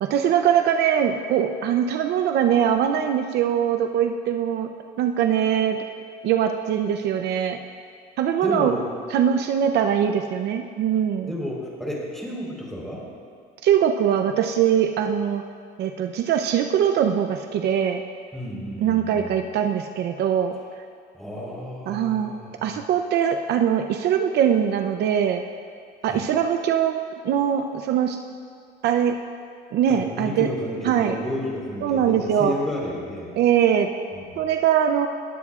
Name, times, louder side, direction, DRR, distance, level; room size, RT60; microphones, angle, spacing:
voice 1, 0.0-4.7 5.0-5.8 6.2-7.6 8.2-8.7 9.1-11.3 13.6-15.4 15.8-18.0 18.8-20.6 21.9-22.3 22.6-25.4 26.0-27.0 27.2-28.2 28.8-29.2 29.7-30.5 30.8-31.2 31.8-32.5 33.4-33.9 34.4-35.1, right 9 dB, 60° right, 6 dB, 0.7 m, -22 dB
voice 2, 8.4-8.9 11.3-13.1 18.3-19.4 21.1-22.7 26.1-26.2 29.9-33.3 34.1-34.4, left 1 dB, ahead, -3 dB, 4.1 m, -32 dB
20.5 x 15.0 x 2.5 m, 2.3 s
cardioid pair, 115°, 19 cm